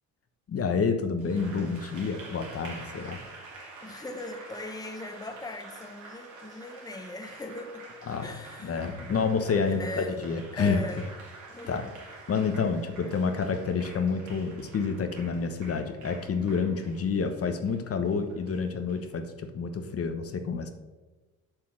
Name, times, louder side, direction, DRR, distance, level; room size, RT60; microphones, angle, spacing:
voice 1, 0.5-3.2 3.9-4.0 8.1-8.3 8.6-10.8 11.7-11.8 12.3-20.7, left 5 dB, 50° left, 7 dB, 1.1 m, -29 dB
Applause, 1.2-19.0, right 3 dB, 75° right, 3.0 m, -48 dB
voice 2, 3.8-7.9 8.2-8.8 9.7-10.2 10.5-11.1 11.5-12.0, left 2 dB, 15° left, 6 dB, 1.1 m, -39 dB
7.6 x 6.8 x 6.4 m, 1.2 s
cardioid pair, 90°, 30 cm